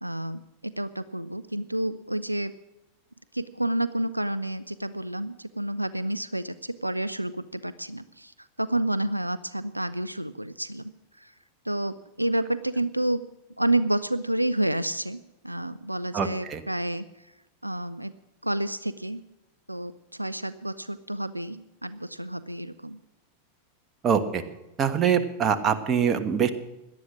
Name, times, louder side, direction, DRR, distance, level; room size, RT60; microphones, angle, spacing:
voice 1, 0.0-2.5 3.3-10.9 11.2-11.3 11.6-13.2 13.6-17.1 17.6-18.1 18.4-19.2 19.7-23.0, right 1 dB, 85° right, 15 dB, 0.5 m, -29 dB
voice 2, 16.1-16.6 24.0-24.4 24.8-26.5, right 7 dB, 25° right, 9 dB, 1.5 m, -24 dB
18.0 x 11.5 x 6.2 m, 0.99 s
figure-of-eight pair, 90°, 0 cm